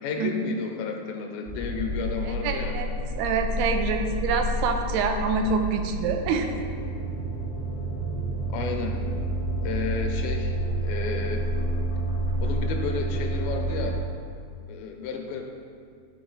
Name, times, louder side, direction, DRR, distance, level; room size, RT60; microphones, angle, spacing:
voice 1, 0.0-2.8 8.5-9.0 9.6-11.5 12.4-14.0 14.7-15.4, left 5 dB, 80° left, 3 dB, 2.3 m, -32 dB
sound 1, 1.4-14.0, right 1 dB, 10° right, 0.3 m, -29 dB
voice 2, 2.3-2.9 3.2-6.5, right 5 dB, 85° right, 5 dB, 2.6 m, -26 dB
11.5 x 4.7 x 3.9 m, 2.2 s
omnidirectional pair, 4.5 m